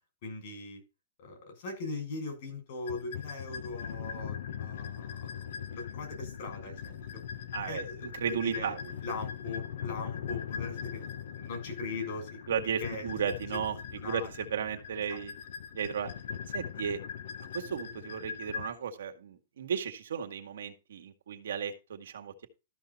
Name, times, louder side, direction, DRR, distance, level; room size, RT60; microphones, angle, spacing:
voice 1, 0.2-0.8 1.2-5.2 5.7-7.0 7.7-8.7 9.0-12.4 12.8-13.3 14.0-14.3 15.1-15.2, left 3 dB, 55° left, 3 dB, 6.7 m, -40 dB
sound 1, 2.9-18.7, left 8 dB, 70° left, 1.3 m, -40 dB
voice 2, 7.5-8.8 12.5-13.8 14.1-15.3 15.7-16.1 16.5-17.0 17.4-22.5, right 7 dB, 80° right, 4 dB, 1.8 m, -34 dB
13.0 x 5.7 x 4.2 m, 0.28 s
hypercardioid pair, 150°, 0 cm